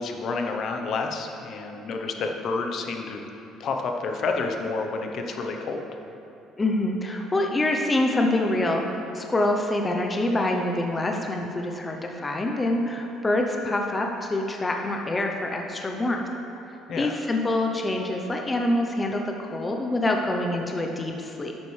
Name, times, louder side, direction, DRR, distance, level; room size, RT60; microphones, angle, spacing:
voice 1, 0.0-5.9 16.9-17.2, left 4 dB, 50° left, 3 dB, 0.8 m, -29 dB
voice 2, 6.6-8.9 9.1-16.3 17.0-21.5, left 1 dB, 20° left, 2 dB, 0.7 m, -26 dB
11.0 x 8.6 x 3.3 m, 2.8 s
cardioid pair, 130°, 0 cm